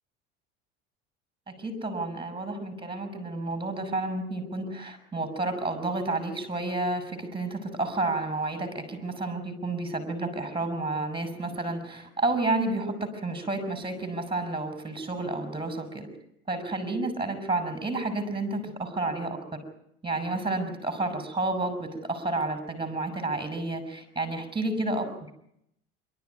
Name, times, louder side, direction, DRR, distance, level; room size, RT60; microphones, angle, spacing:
voice 1, 1.6-16.1 16.5-19.6 20.0-25.1, right 2 dB, 15° right, 10 dB, 5.9 m, -30 dB
25.5 x 13.0 x 9.4 m, 0.77 s
supercardioid pair, 90°, 29 cm